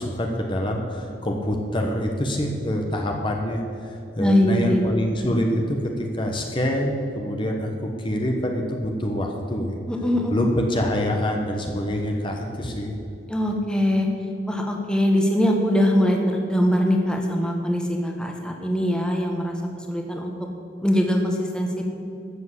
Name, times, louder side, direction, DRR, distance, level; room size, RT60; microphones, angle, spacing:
voice 1, 0.0-9.7 10.3-13.0, equal, 30° left, 2 dB, 1.3 m, -25 dB
voice 2, 4.2-4.8 9.9-10.3 13.3-14.1 14.5-19.5 19.9-20.3 20.8-21.8, equal, 5° left, 1 dB, 1.4 m, -22 dB
13.5 x 7.5 x 8.3 m, 2.6 s
head